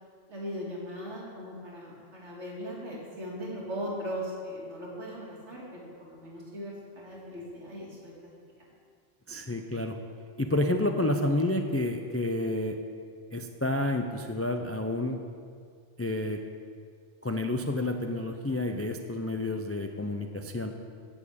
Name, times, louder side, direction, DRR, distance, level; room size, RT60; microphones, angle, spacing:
voice 1, 0.3-8.1 8.6-8.7, equal, 70° right, -4 dB, 2.8 m, -39 dB
voice 2, 9.3-10.0 10.4-12.8 13.3-15.2 16.0-16.4 17.2-20.7, left 1 dB, 20° left, 5 dB, 0.4 m, -29 dB
10.5 x 7.5 x 8.5 m, 2.2 s
omnidirectional pair, 1.2 m